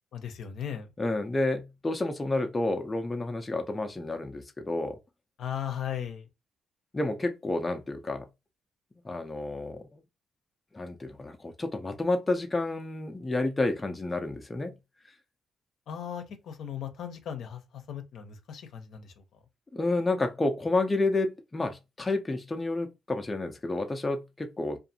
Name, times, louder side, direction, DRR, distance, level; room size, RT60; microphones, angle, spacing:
voice 1, 0.1-0.9 5.4-6.3 15.9-19.4, left 9 dB, 70° left, 0.6 m, -37 dB
voice 2, 1.0-5.0 6.9-8.3 9.0-10.0 10.7-14.7 19.7-24.8, left 2 dB, 20° left, 0.5 m, -30 dB
2.5 x 2.4 x 2.7 m
cardioid pair, 90°, 0 cm